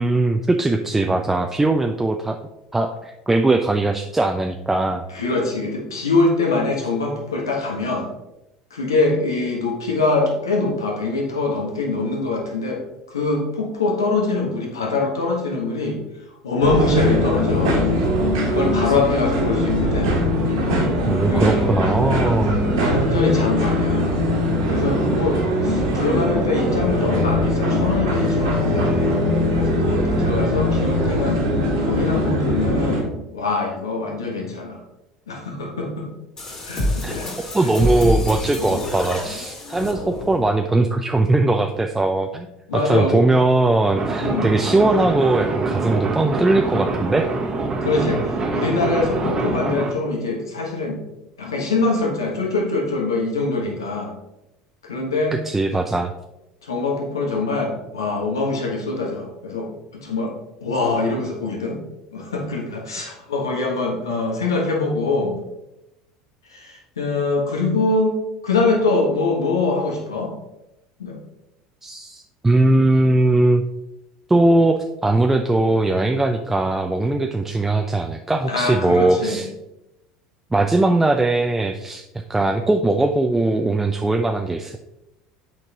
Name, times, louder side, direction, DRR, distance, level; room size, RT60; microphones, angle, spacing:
voice 1, 0.0-2.4 2.7-5.0 21.1-22.5 37.0-37.1 37.5-42.5 42.7-47.3 55.4-56.1 71.8-73.6 74.3-79.5 80.5-82.0 82.3-84.8, right 2 dB, 10° right, 4 dB, 0.5 m, -20 dB
voice 2, 5.1-8.1 8.7-12.8 13.1-16.0 16.4-17.8 18.5-20.2 21.3-21.7 22.6-24.1 24.7-29.2 29.5-31.4 31.8-33.0 33.3-34.8 35.3-36.1 36.7-37.3 37.6-37.7 42.7-43.3 44.2-44.5 47.8-51.0 51.4-54.1 54.8-55.4 56.6-60.3 60.6-61.8 62.1-65.4 66.5-68.2 68.4-70.3 71.0-71.2 78.4-79.4, left 3 dB, 90° left, 0 dB, 1.3 m, -23 dB
sound 1, 16.6-33.0, left 1 dB, 80° right, 1.8 m, -21 dB
sound 2, 36.4-40.5, left 1 dB, 35° left, 2.3 m, -26 dB
sound 3, 43.9-49.9, right 3 dB, 35° right, 1.0 m, -25 dB
7.8 x 4.5 x 2.9 m, 0.91 s
hypercardioid pair, 75°, 2 cm